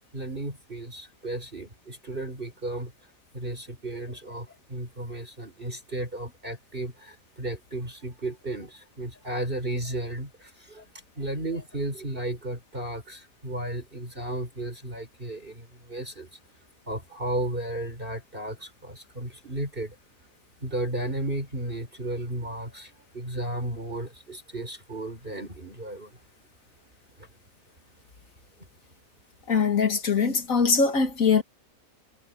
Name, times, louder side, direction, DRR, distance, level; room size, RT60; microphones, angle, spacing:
voice 1, 0.1-2.9 3.3-10.8 11.2-16.3 16.9-19.9 20.6-26.1, right 1 dB, 35° right, 4.9 m, -34 dB
voice 2, 29.5-31.4, left 5 dB, 55° left, 2.2 m, -22 dB
omnidirectional pair, 1.7 m